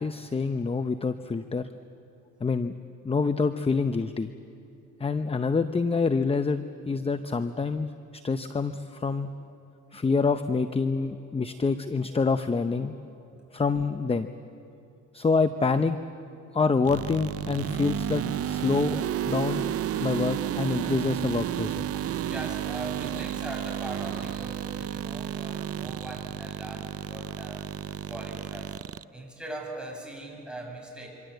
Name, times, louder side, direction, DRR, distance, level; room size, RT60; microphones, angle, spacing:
voice 1, 0.0-1.7 2.4-2.7 3.0-4.3 5.0-9.3 9.9-12.9 13.5-14.3 15.1-16.0 16.5-19.7 20.0-22.0, left 4 dB, 20° left, 10 dB, 0.8 m, -27 dB
sound 1, 16.8-29.0, right 10 dB, 50° right, 0.6 m, -32 dB
voice 2, 22.2-27.7 28.1-28.8 29.1-31.1, right 1 dB, 5° right, -1 dB, 7.1 m, -40 dB
26.5 x 25.0 x 8.0 m, 2.6 s
cardioid pair, 90°, 30 cm